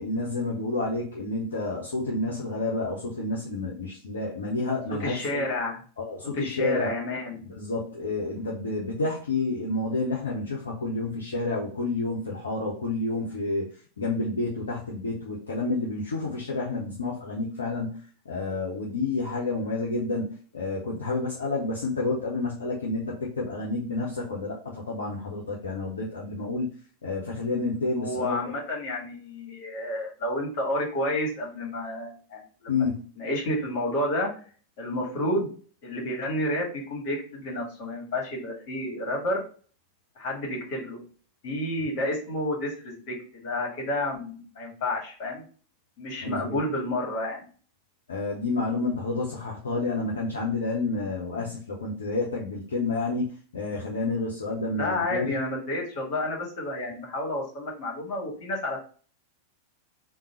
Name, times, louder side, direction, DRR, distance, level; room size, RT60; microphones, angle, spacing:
voice 1, 0.0-5.4 6.0-6.9 7.5-13.7 14.0-18.0 18.2-26.7 27.0-28.4 32.7-33.0 46.2-46.6 48.1-55.4, left 3 dB, 70° left, -3 dB, 0.8 m, -29 dB
voice 2, 5.0-5.8 6.3-7.5 28.0-32.8 33.2-34.3 34.8-35.5 35.8-39.4 40.1-41.0 41.4-45.4 46.0-47.5 54.7-58.8, left 1 dB, 45° left, -2 dB, 1.7 m, -30 dB
3.7 x 2.3 x 4.2 m, 0.41 s
figure-of-eight pair, 90°, 0 cm